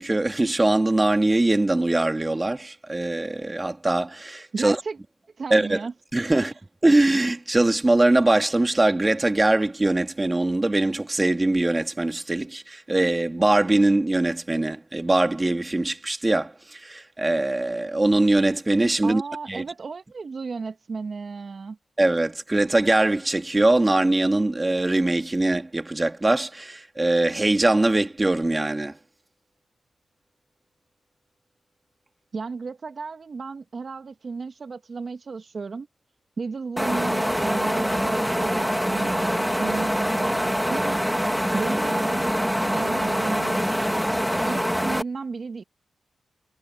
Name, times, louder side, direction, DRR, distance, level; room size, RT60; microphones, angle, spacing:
voice 1, 0.0-4.8 5.5-5.8 6.1-6.5 6.8-19.2 19.5-19.6 22.0-28.9, right 2 dB, 25° right, 2.7 m, -22 dB
voice 2, 4.5-5.0 5.4-5.9 6.3-6.5 19.0-21.8 32.3-35.9 36.4-41.0 41.5-43.7 44.5-45.6, right 4 dB, 55° right, 1.7 m, -33 dB
sound 1, 36.8-45.0, equal, ahead, 3.1 m, -24 dB
supercardioid pair, 45°, 0 cm